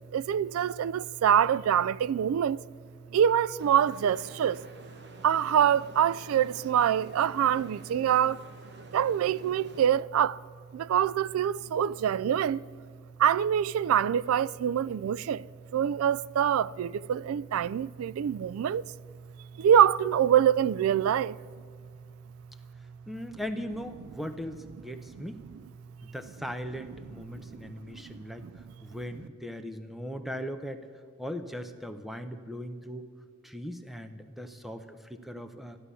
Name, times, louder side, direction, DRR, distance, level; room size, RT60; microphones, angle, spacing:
voice 1, 0.1-2.6 3.1-4.6 5.2-8.4 8.9-10.4 10.7-12.6 13.2-15.5 15.7-18.8 19.6-21.4 27.3-28.5, right 9 dB, 90° right, 0.3 m, -25 dB
sound 1, 3.6-9.9, right 2 dB, 50° right, 1.1 m, -49 dB
voice 2, 23.1-25.4 26.0-30.9 31.2-33.1 33.4-35.8, equal, ahead, 0.7 m, -39 dB
14.5 x 11.5 x 6.9 m
head